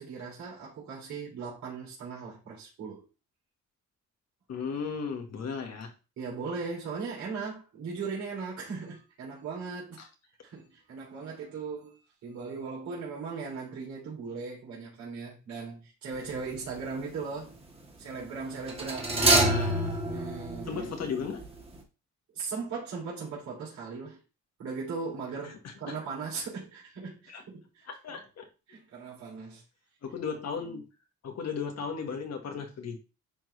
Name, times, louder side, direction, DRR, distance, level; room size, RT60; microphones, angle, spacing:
voice 1, 0.0-3.1 6.2-10.0 10.4-17.5 18.0-19.2 20.1-21.1 22.3-24.2 24.6-27.9 28.7-29.6, right 4 dB, 65° right, 3.3 m, -38 dB
voice 2, 4.5-5.9 10.0-10.1 19.2-20.0 20.7-21.4 25.6-25.9 27.3-27.4 27.9-28.5 30.0-30.9 31.2-33.0, left 6 dB, 60° left, 1.8 m, -35 dB
sound 1, 16.2-16.6 18.7-21.5 21.7-21.8, right 1 dB, 20° right, 1.9 m, -27 dB
10.0 x 3.7 x 3.3 m
cardioid pair, 90°, 30 cm